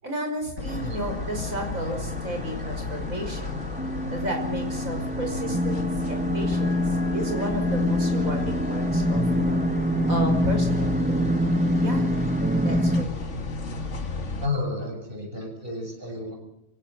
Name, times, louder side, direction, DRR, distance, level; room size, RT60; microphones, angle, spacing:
voice 1, 0.0-3.6 4.1-9.6 10.1-11.2 11.8-12.1 12.6-13.4, equal, 65° right, 4 dB, 6.0 m, -33 dB
sound 1, 0.6-14.5, left 3 dB, 55° left, 2.1 m, -33 dB
sound 2, 0.7-13.0, equal, 10° right, 0.6 m, -26 dB
voice 2, 14.4-16.4, left 2 dB, 35° right, 2 dB, 7.7 m, -31 dB
26.0 x 16.5 x 8.2 m, 0.80 s
omnidirectional pair, 1.5 m